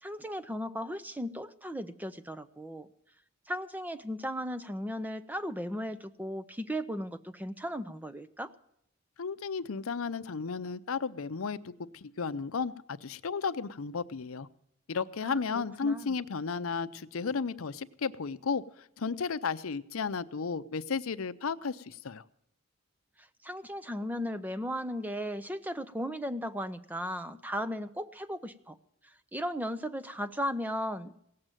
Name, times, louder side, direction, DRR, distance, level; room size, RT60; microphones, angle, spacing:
voice 1, 0.0-2.9 3.5-8.5 15.2-16.1 23.2-28.8 29.0-31.2, equal, 10° right, 12 dB, 0.5 m, -36 dB
voice 2, 9.2-14.5 14.9-22.2, left 5 dB, 75° left, 13 dB, 0.6 m, -34 dB
17.5 x 7.7 x 9.0 m, 0.74 s
head